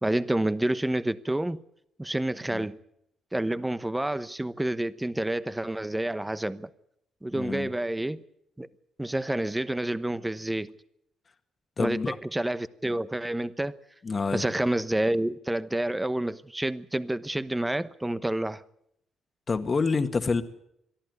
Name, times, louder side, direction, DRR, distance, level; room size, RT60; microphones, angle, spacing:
voice 1, 0.0-1.6 2.0-2.8 3.3-6.7 7.2-8.2 8.6-8.7 9.0-10.7 11.8-13.8 14.3-18.6, right 1 dB, 10° right, 1.0 m, -29 dB
voice 2, 7.3-7.7 11.8-12.2 14.0-14.4 19.5-20.4, left 4 dB, 35° left, 1.8 m, -27 dB
23.0 x 13.5 x 9.5 m
cardioid pair, 90°, 0 cm